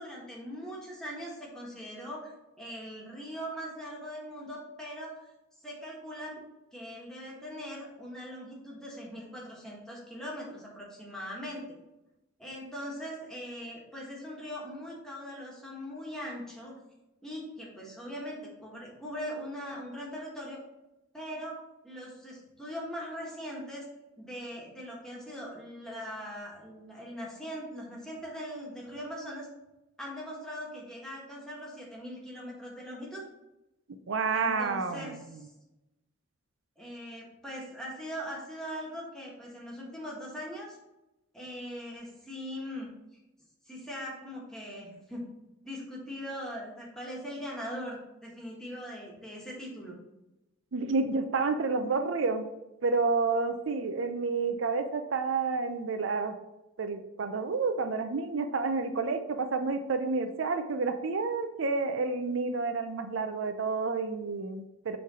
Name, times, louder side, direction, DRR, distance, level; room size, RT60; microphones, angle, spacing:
voice 1, 0.0-2.3 2.6-5.3 5.6-6.4 6.7-11.6 12.4-16.7 17.2-20.6 21.1-21.6 21.8-23.8 24.2-29.5 30.0-33.2 34.3-35.5 36.8-40.8 41.3-42.9 43.7-45.2 45.6-50.0, equal, 5° left, -4 dB, 1.5 m, -41 dB
voice 2, 34.1-35.1 50.7-52.5 52.8-56.3 56.8-65.0, right 4 dB, 75° right, 8 dB, 0.5 m, -29 dB
6.9 x 3.3 x 4.9 m, 0.95 s
head